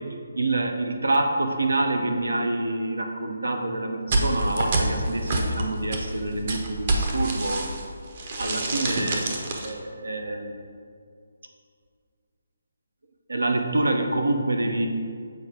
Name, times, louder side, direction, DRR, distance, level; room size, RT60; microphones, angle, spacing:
voice 1, 0.3-7.7 8.4-9.3 9.6-10.5 13.3-14.9, right 2 dB, 90° right, 4 dB, 0.7 m, -26 dB
sound 1, 4.1-7.9 8.2-9.7, right 2 dB, 45° right, 0.8 m, -27 dB
7.7 x 4.4 x 3.5 m, 2.2 s
figure-of-eight pair, 155°, 0 cm